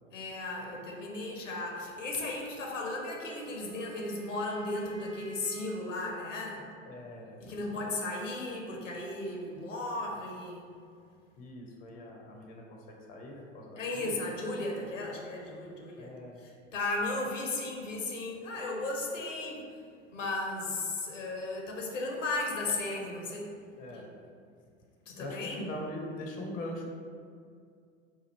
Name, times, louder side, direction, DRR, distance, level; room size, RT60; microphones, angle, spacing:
voice 1, 0.1-6.6 7.4-10.7 13.8-16.1 16.4-19.7 20.1-23.5 23.9-24.0 25.1-25.7, left 2 dB, 80° left, -1 dB, 0.7 m, -35 dB
Wind instrument woodwind instrument, 2.9-6.2, right 2 dB, 45° right, 0.7 m, -46 dB
voice 2, 6.9-7.9 11.4-14.2 16.0-16.4 23.8-24.1 25.0-26.9, left 1 dB, 25° left, 1 dB, 0.4 m, -42 dB
3.0 x 2.3 x 4.1 m, 2.2 s
figure-of-eight pair, 80°, 37 cm